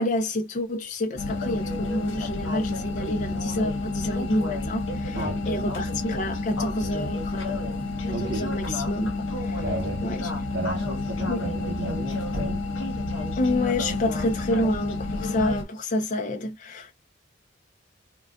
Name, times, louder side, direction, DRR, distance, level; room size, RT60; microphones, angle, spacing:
voice 1, 0.0-5.2 5.5-7.7 8.2-9.6 10.0-10.3 11.3-11.4 13.4-16.9, left 1 dB, 40° left, 0.5 m, -28 dB
sound 1, 1.2-15.6, left 2 dB, 80° left, 1.1 m, -29 dB
voice 2, 5.1-5.5 8.1-8.6 9.6-10.1 10.5-12.7, right 2 dB, 80° right, 0.7 m, -33 dB
3.9 x 2.2 x 2.3 m
head